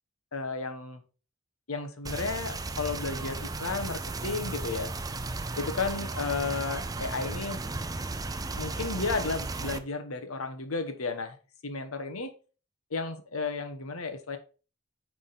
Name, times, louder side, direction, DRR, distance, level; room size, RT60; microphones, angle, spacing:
voice 1, 0.3-1.0 1.7-4.9 5.6-7.6 8.6-11.4 11.6-12.3 12.9-14.4, left 4 dB, 85° left, 8 dB, 1.1 m, -33 dB
sound 1, 2.0-9.8, right 3 dB, 20° right, 0.4 m, -35 dB
9.0 x 3.7 x 4.1 m, 0.34 s
head